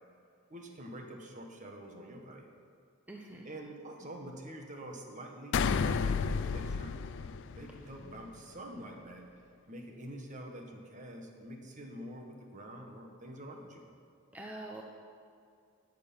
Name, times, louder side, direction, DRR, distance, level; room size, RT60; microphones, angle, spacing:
voice 1, 0.5-2.5 3.4-9.2 9.7-13.8, right 1 dB, 40° right, 2 dB, 1.5 m, -46 dB
voice 2, 3.1-3.5 14.3-14.8, right 2 dB, 5° right, 0 dB, 0.7 m, -44 dB
sound 1, 5.5-8.1, left 5 dB, 60° left, 0.4 m, -31 dB
19.0 x 6.7 x 5.6 m, 2.4 s
head